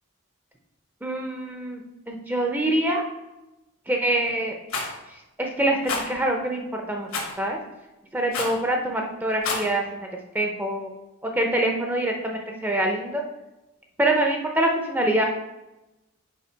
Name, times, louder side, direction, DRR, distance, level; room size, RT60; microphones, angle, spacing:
voice 1, 1.0-1.8 2.1-3.0 3.9-4.6 5.4-7.1 7.4-7.6 8.1-10.1 10.3-10.9 11.2-13.2 14.0-15.3, right 1 dB, 10° right, 1 dB, 0.5 m, -25 dB
Rattle, 4.7-4.9 5.9-6.0 7.1-7.3 8.3-8.6 9.3-9.7, left 4 dB, 75° left, 1.2 m, -28 dB
5.6 x 4.6 x 4.5 m, 1.0 s
head